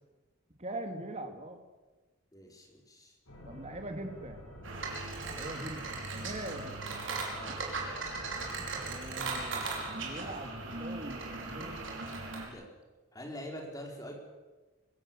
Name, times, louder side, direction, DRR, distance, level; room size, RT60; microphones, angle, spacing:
voice 1, 0.6-1.6 3.4-4.4 5.2-6.8 8.8-11.8, right 1 dB, 30° right, 5 dB, 2.6 m, -42 dB
voice 2, 2.3-3.1 7.3-7.9 8.2-8.6 12.5-12.7 13.1-14.1, equal, 15° left, 1 dB, 4.6 m, -45 dB
sound 1, 3.3-12.4, left 1 dB, 85° left, 7.0 m, -51 dB
sound 2, 4.6-12.5, right 3 dB, 60° right, 5.3 m, -38 dB
25.0 x 17.0 x 7.7 m, 1.2 s
head